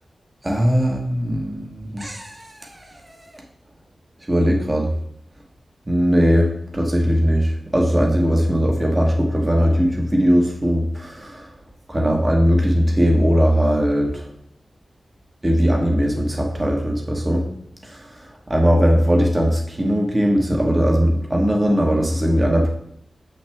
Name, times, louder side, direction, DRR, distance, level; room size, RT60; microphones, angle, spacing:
voice 1, 0.4-2.7 3.1-3.3 4.3-4.9 5.9-11.5 11.9-14.2 15.4-17.4 17.8-18.0 18.5-22.7, equal, 20° right, 1 dB, 1.3 m, -19 dB
7.3 x 6.0 x 3.5 m, 0.73 s
wide cardioid pair, 115°, 0 cm